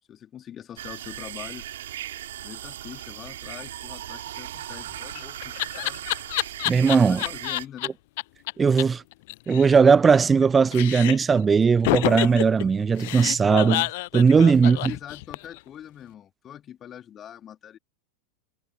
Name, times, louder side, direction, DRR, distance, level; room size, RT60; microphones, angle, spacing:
voice 1, 0.1-1.7 2.4-6.1 7.1-7.9 14.6-17.8, left 10 dB, 25° left, 2.9 m, -43 dB
sound 1, 0.8-7.6, right 12 dB, 60° right, 4.2 m, -38 dB
Laughter, 4.8-7.9 8.2-8.3 8.5-8.6 8.8-8.9 9.1-10.4 10.7-11.3 11.8-15.6, left 21 dB, 50° left, 0.6 m, -28 dB
voice 2, 6.7-7.2 8.6-9.0 9.5-13.9 14.1-14.9, right 5 dB, 15° right, 0.5 m, -18 dB
figure-of-eight pair, 90°, 0 cm